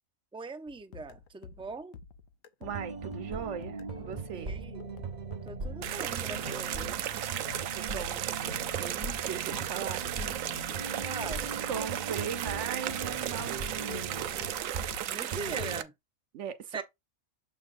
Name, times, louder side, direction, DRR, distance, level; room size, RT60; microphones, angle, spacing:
voice 1, 0.3-2.0 4.3-4.9 5.5-7.2 11.0-11.6 15.1-15.9 16.7-16.8, right 3 dB, 5° right, 0.4 m, -41 dB
sound 1, 0.7-12.6 12.9-15.7, left 5 dB, 85° left, 1.2 m, -50 dB
sound 2, 2.6-15.0 15.3-15.8, right 3 dB, 35° right, 1.0 m, -39 dB
voice 2, 2.6-4.5 7.4-10.4 11.7-14.5 16.3-16.8, right 8 dB, 65° right, 1.1 m, -39 dB
sound 3, 5.8-15.8, right 11 dB, 85° right, 1.1 m, -35 dB
7.5 x 5.8 x 2.6 m
omnidirectional pair, 1.4 m